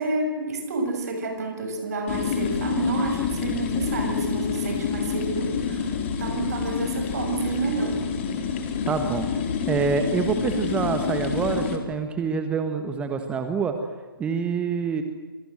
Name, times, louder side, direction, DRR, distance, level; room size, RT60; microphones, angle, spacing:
voice 1, 0.0-5.9 6.2-8.0, right 3 dB, 40° right, 4 dB, 7.2 m, -29 dB
sound 1, 2.1-11.8, left 6 dB, 30° left, 4.1 m, -28 dB
voice 2, 8.9-9.3 9.7-13.8 14.2-15.0, right 5 dB, 10° right, 6 dB, 1.6 m, -26 dB
29.0 x 26.0 x 7.8 m, 1.3 s
figure-of-eight pair, 135°, 12 cm